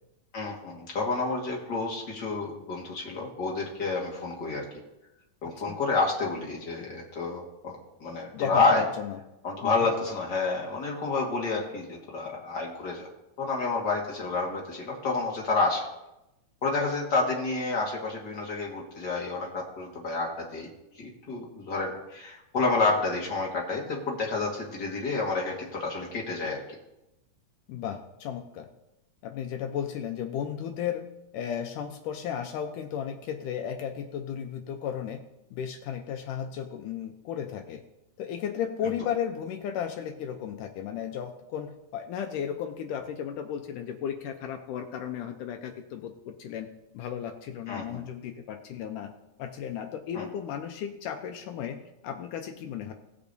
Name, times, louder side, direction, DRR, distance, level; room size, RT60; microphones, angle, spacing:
voice 1, 0.3-4.6 5.4-8.8 9.4-13.1 13.4-15.8 16.6-20.7 21.0-26.6 47.7-48.0 50.1-50.3, left 3 dB, 45° left, -2 dB, 1.5 m, -29 dB
voice 2, 8.3-9.2 9.6-9.7 27.7-28.7 29.2-31.0 31.3-35.2 35.5-37.8 38.2-46.7 46.9-49.1 49.4-52.9, left 8 dB, 80° left, 5 dB, 2.1 m, -34 dB
18.5 x 6.8 x 2.7 m, 0.91 s
omnidirectional pair, 4.1 m